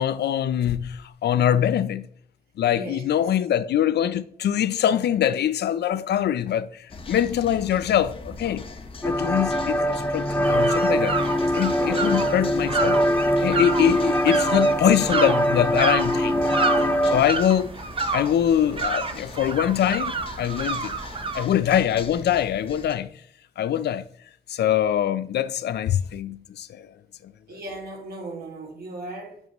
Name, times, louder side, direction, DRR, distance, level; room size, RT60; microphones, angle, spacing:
voice 1, 0.0-2.1 2.6-8.7 9.0-11.2 11.5-13.0 13.4-16.4 16.8-17.7 18.1-21.0 21.3-23.1 23.6-24.1 24.5-26.9 27.2-27.3, left 10 dB, 75° left, 0.5 m, -23 dB
voice 2, 2.7-3.3 11.8-12.4 13.4-13.8 27.5-29.5, right 2 dB, 65° right, 2.4 m, -37 dB
sound 1, 6.9-23.0, left 3 dB, 30° left, 1.0 m, -41 dB
sound 2, 9.0-17.2, equal, 10° left, 0.7 m, -23 dB
sound 3, 10.4-21.4, right 4 dB, 30° right, 0.7 m, -30 dB
9.5 x 7.2 x 3.0 m
wide cardioid pair, 145°, 17 cm